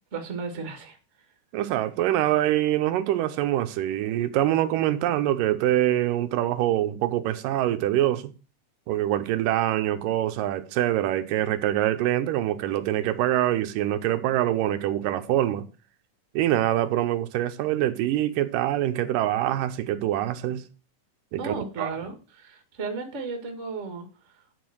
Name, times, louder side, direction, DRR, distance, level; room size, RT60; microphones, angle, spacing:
voice 1, 0.1-1.0 21.4-24.4, right 4 dB, 35° right, 1.1 m, -34 dB
voice 2, 1.5-8.3 8.9-15.6 16.3-20.6 21.3-21.9, right 13 dB, 85° right, 2.4 m, -25 dB
10.5 x 4.3 x 6.2 m
omnidirectional pair, 3.8 m